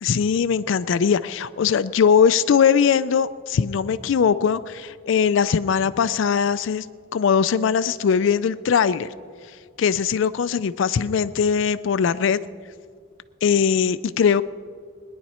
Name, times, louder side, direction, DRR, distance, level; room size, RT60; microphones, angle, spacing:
voice 1, 0.0-6.9 7.1-9.1 9.5-12.4 13.4-14.4, left 7 dB, 65° left, 14 dB, 0.3 m, -20 dB
21.0 x 10.5 x 4.3 m, 2.1 s
head